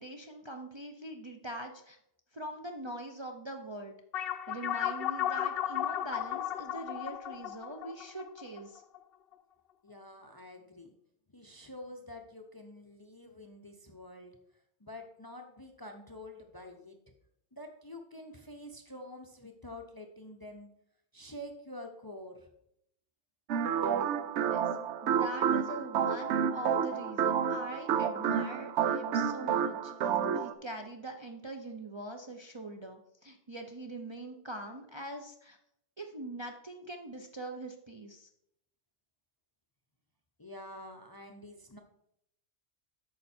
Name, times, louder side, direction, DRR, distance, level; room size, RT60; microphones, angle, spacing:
voice 1, 0.0-2.0 2.3-4.0 4.5-8.8 24.4-24.7 25.0-29.9 30.3-35.6 36.0-38.3, right 1 dB, 30° right, 3 dB, 0.6 m, -43 dB
sound 1, 4.1-9.0, left 11 dB, 60° left, 0.8 m, -34 dB
voice 2, 9.8-10.9 11.3-17.0 17.5-20.7 21.1-22.5 40.4-41.8, left 1 dB, 25° left, 4 dB, 0.6 m, -47 dB
sound 2, 23.5-30.5, right 8 dB, 80° right, 0.9 m, -30 dB
8.8 x 6.3 x 4.3 m, 0.77 s
omnidirectional pair, 1.2 m